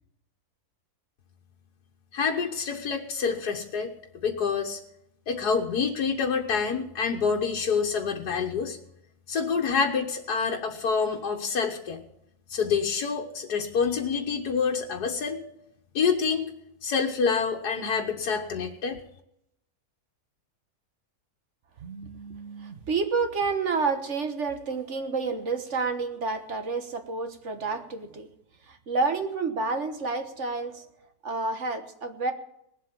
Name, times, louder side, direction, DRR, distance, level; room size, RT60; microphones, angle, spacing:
voice 1, 2.1-3.9 4.2-4.8 5.3-8.8 9.3-12.0 12.5-15.4 16.0-16.5 16.8-19.0, left 5 dB, 85° left, 1 dB, 1.7 m, -27 dB
voice 2, 21.8-28.3 28.7-30.8 31.2-32.3, right 4 dB, 50° right, 7 dB, 1.5 m, -29 dB
19.0 x 7.8 x 7.5 m, 0.79 s
omnidirectional pair, 1.7 m